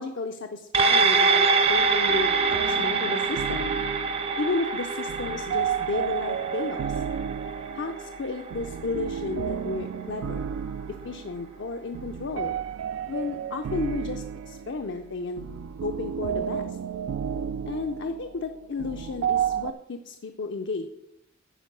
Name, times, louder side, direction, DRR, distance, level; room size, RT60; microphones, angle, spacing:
voice 1, 0.0-3.7 4.4-7.0 7.7-10.4 11.0-12.6 13.1-15.5 15.8-16.8 17.7-20.9, left 3 dB, 65° left, 6 dB, 0.6 m, -33 dB
sound 1, 0.7-9.4 9.8-9.9, right 4 dB, 30° right, 0.6 m, -25 dB
sound 2, 1.6-19.7, right 8 dB, 85° right, 0.3 m, -33 dB
10.0 x 4.5 x 6.6 m, 0.84 s
head